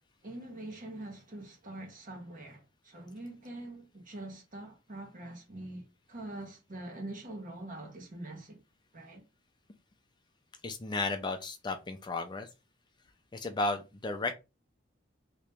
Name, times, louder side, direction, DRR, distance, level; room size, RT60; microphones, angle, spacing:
voice 1, 0.2-8.6 8.9-9.2, right 1 dB, 45° right, 1.3 m, -44 dB
voice 2, 10.6-12.5 13.3-14.3, left 2 dB, 25° left, 0.4 m, -33 dB
3.1 x 2.9 x 3.4 m
head